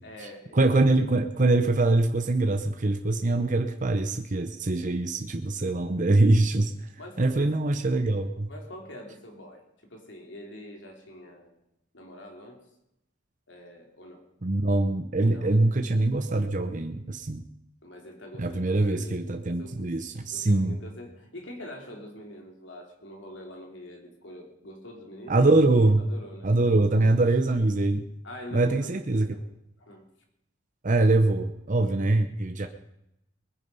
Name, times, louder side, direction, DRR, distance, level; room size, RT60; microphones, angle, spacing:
voice 1, 0.0-0.6 7.0-7.5 7.9-8.0 8.5-11.6 11.9-12.7 13.5-14.3 15.3-15.6 17.8-19.9 20.3-25.5 26.0-26.6 26.9-27.2 28.2-29.5 29.8-30.0 31.8-31.9 32.6-32.7, left 1 dB, 75° left, 2 dB, 3.3 m, -45 dB
voice 2, 0.5-6.7 7.2-8.5 14.4-17.4 18.4-20.8 25.3-26.1 26.4-28.0 28.5-29.4 30.8-32.7, right 2 dB, 45° right, 6 dB, 0.9 m, -23 dB
20.5 x 10.0 x 5.5 m, 0.83 s
head